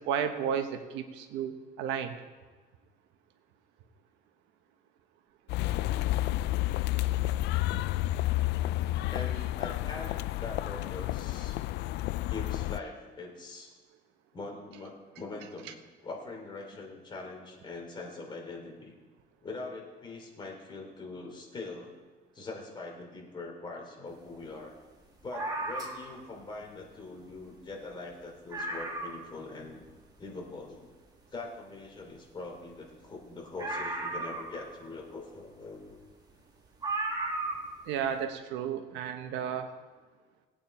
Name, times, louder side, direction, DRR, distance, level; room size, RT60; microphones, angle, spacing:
voice 1, 0.0-2.1 37.9-39.7, right 8 dB, 85° right, 7 dB, 1.2 m, -33 dB
sound 1, 5.5-12.8, left 16 dB, 70° left, 0.4 m, -30 dB
voice 2, 9.1-11.6 12.2-13.8 14.3-18.9 19.4-21.9 22.3-24.7 25.2-29.8 30.2-30.9 31.3-36.0, left 3 dB, 25° left, 0 dB, 3.3 m, -42 dB
sound 2, 25.3-26.2 27.3-27.4 27.7-27.8 28.2-28.3 28.5-29.3 29.8-29.9 33.6-34.9 36.0-36.1 36.8-37.8 38.1-38.2, right 2 dB, 20° right, 2.1 m, -35 dB
20.0 x 8.9 x 4.4 m, 1.4 s
cardioid pair, 125°, 18 cm